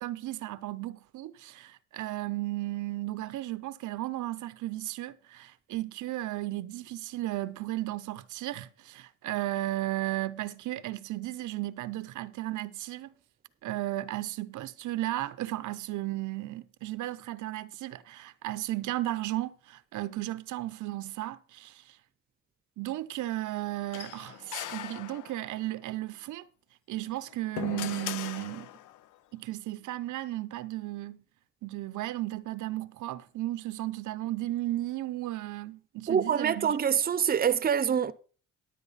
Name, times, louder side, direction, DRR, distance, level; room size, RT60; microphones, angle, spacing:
voice 1, 0.0-13.1 13.6-22.0 22.8-26.4 26.9-28.7 29.3-31.2 31.6-36.8, right 16 dB, 75° right, 0.7 m, -35 dB
sound 1, 23.9-25.7 27.0-29.1, left 14 dB, 90° left, 0.5 m, -39 dB
voice 2, 36.1-38.1, right 8 dB, 30° right, 0.7 m, -25 dB
11.0 x 8.6 x 4.0 m
cardioid pair, 90°, 30 cm